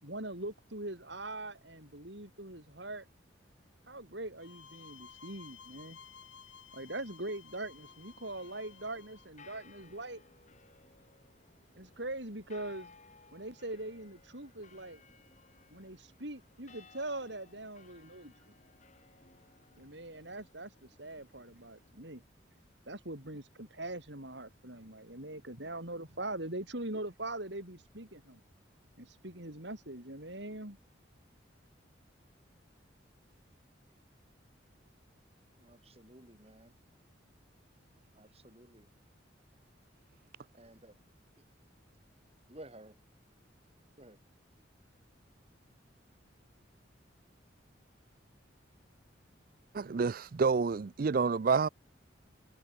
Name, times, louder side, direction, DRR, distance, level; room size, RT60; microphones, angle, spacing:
voice 1, 0.0-3.1 3.9-6.0 6.7-10.2 11.7-12.9 13.3-15.0 15.7-18.5 19.8-22.2 22.9-28.4 29.0-30.8, right 2 dB, 65° right, 6.4 m, -42 dB
sound 1, 4.4-9.3, left 7 dB, 85° left, 4.5 m, -55 dB
sound 2, 7.8-21.9, left 4 dB, 40° left, 7.4 m, -60 dB
voice 2, 35.6-36.8 38.2-38.9 40.6-41.0 42.5-43.0 44.0-44.2, right 1 dB, 30° right, 6.0 m, -54 dB
voice 3, 49.7-51.7, right 5 dB, 50° right, 0.4 m, -28 dB
head